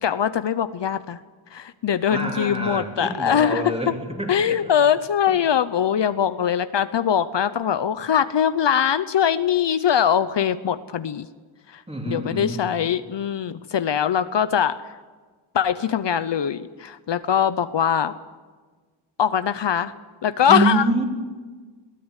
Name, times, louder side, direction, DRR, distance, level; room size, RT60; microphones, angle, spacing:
voice 1, 0.0-1.2 1.5-3.6 4.3-11.3 12.1-14.8 15.5-18.1 19.2-19.9 20.2-20.8, left 8 dB, 65° left, 12 dB, 0.8 m, -22 dB
voice 2, 2.1-4.8 5.3-5.4 11.9-12.6 20.5-21.0, right 2 dB, 15° right, 1 dB, 3.5 m, -26 dB
22.0 x 18.0 x 8.2 m, 1.4 s
wide cardioid pair, 160°, 47 cm